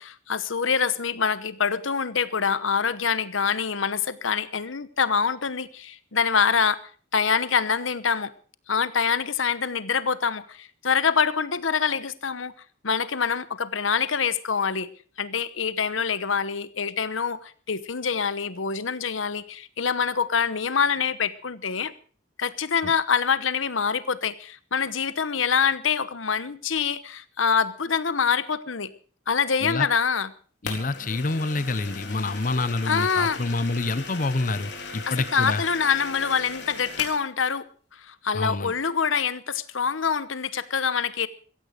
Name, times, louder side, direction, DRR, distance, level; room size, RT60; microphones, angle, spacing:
voice 1, 0.0-6.8 7.1-8.3 8.7-12.5 12.8-14.9 15.2-21.9 22.4-28.9 29.3-30.3 32.8-33.4 34.9-41.3, left 6 dB, 90° left, 15 dB, 1.0 m, -25 dB
sound 1, 30.6-37.2, left 4 dB, 65° left, 4.2 m, -38 dB
voice 2, 30.6-35.6 38.3-38.7, left 2 dB, 40° left, 15 dB, 0.7 m, -27 dB
16.0 x 15.0 x 5.1 m, 0.42 s
head